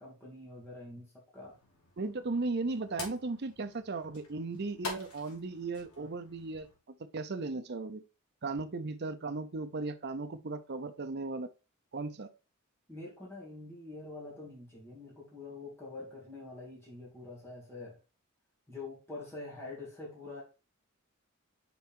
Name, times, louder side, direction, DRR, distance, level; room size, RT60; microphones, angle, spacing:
voice 1, 0.0-1.5 12.9-18.0 18.7-20.4, left 2 dB, 10° left, 2.4 m, -45 dB
sound 1, 1.4-6.8, left 3 dB, 85° left, 2.5 m, -47 dB
voice 2, 2.0-6.7 7.1-8.0 8.4-11.5 11.9-12.3, right 3 dB, 50° right, 0.6 m, -36 dB
5.5 x 4.3 x 4.4 m
head